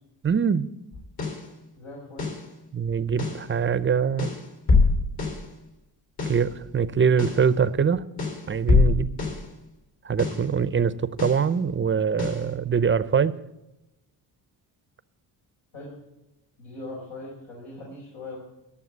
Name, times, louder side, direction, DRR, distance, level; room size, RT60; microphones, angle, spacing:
voice 1, 0.2-0.7 2.7-4.3 6.3-8.0 8.5-9.1 10.0-10.9 11.2-13.3, right 6 dB, 30° right, 16 dB, 0.6 m, -23 dB
sound 1, 0.9-1.5 2.2-2.5 3.2-3.5 4.2-5.5 6.2-6.5 7.2-7.5 8.2-9.5 10.2-10.5 11.2-11.5 12.2-12.5, left 4 dB, 55° left, 3.2 m, -24 dB
voice 2, 1.8-2.3 15.7-15.9 16.6-18.4, left 2 dB, 85° left, -4 dB, 4.4 m, -40 dB
12.5 x 6.9 x 8.1 m, 0.94 s
cardioid pair, 95°, 43 cm